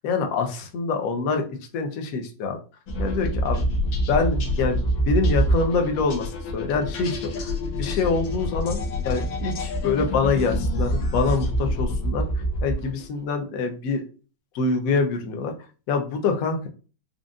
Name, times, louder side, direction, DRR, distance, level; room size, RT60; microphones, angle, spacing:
voice 1, 0.0-1.4 1.7-2.6 3.0-12.2 12.6-14.0 14.5-15.5 15.9-16.7, left 4 dB, 65° left, 4 dB, 0.9 m, -25 dB
sound 1, 2.9-13.0, equal, 80° left, 1.6 m, -26 dB
5.2 x 2.5 x 2.4 m, 0.36 s
omnidirectional pair, 2.1 m